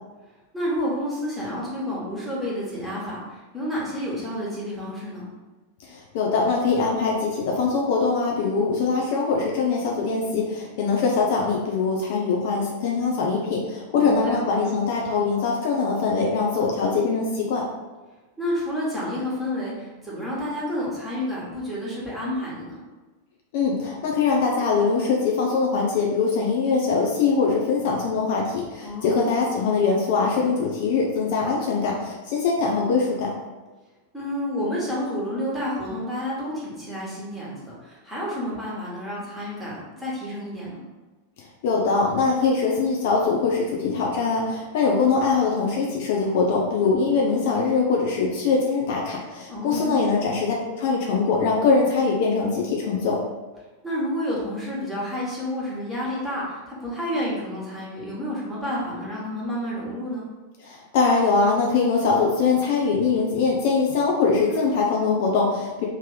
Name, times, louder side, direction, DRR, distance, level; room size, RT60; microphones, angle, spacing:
voice 1, 0.5-5.3 13.9-14.4 18.4-22.8 28.8-29.4 34.1-40.8 49.5-50.2 53.8-60.3 64.5-64.8, equal, 5° right, -7 dB, 1.5 m, -30 dB
voice 2, 5.8-17.6 23.5-33.3 41.6-53.2 60.6-65.9, left 4 dB, 50° left, -1 dB, 0.6 m, -22 dB
3.1 x 2.9 x 3.6 m, 1.2 s
figure-of-eight pair, 90°, 0 cm